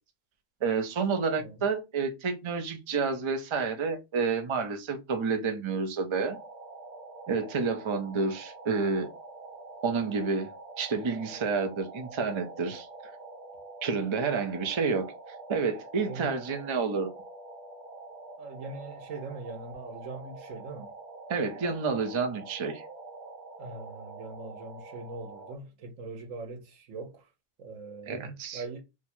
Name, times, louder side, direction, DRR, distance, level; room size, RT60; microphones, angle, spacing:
voice 1, 0.6-6.4 7.3-9.1 9.8-10.5 10.8-12.9 13.8-15.1 15.5-17.1 21.3-22.8 28.1-28.6, right 5 dB, 35° right, 0.4 m, -29 dB
sound 1, 6.1-25.5, right 3 dB, 60° right, 1.3 m, -46 dB
voice 2, 16.0-16.3 18.4-20.9 23.6-27.3 27.6-28.8, right 3 dB, 80° right, 1.2 m, -41 dB
2.8 x 2.4 x 4.2 m
omnidirectional pair, 1.3 m